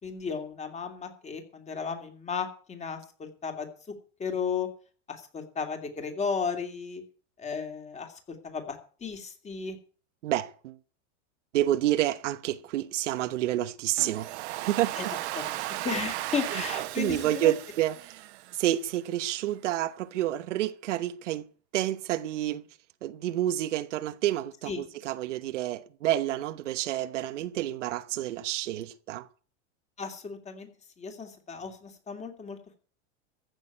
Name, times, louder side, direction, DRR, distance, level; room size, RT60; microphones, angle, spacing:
voice 1, 0.0-3.7 4.2-4.7 5.1-7.0 7.4-8.1 8.4-8.8 9.0-9.8 15.0-15.1 15.3-15.4 15.8-17.5 24.7-24.8 30.0-30.7 31.0-32.6, left 6 dB, 20° left, 2.7 m, -34 dB
voice 2, 10.2-10.8 11.5-14.3 14.6-14.9 16.5-16.6 17.0-18.2 18.6-21.4 21.7-22.6 23.0-29.3, right 13 dB, 85° right, 1.2 m, -29 dB
Domestic sounds home sounds, 14.0-18.9, right 16 dB, 65° right, 1.3 m, -36 dB
15.0 x 6.5 x 9.0 m
supercardioid pair, 145°, 35 cm